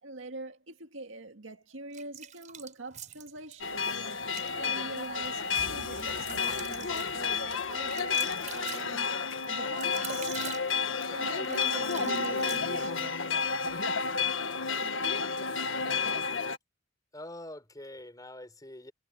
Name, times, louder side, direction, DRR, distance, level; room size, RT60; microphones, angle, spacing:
voice 1, 0.0-4.1 4.5-10.4 11.1-13.1, right 2 dB, 85° right, 2.1 m, -44 dB
sound 1, 1.9-3.6 4.2-4.5 5.0-13.0, right 8 dB, 40° right, 4.6 m, -44 dB
sound 2, 3.6-16.6, left 5 dB, 85° left, 1.6 m, -31 dB
sound 3, 5.5-9.1, left 4 dB, 70° left, 5.4 m, -49 dB
voice 2, 17.1-18.9, left 1 dB, 20° left, 4.8 m, -44 dB
head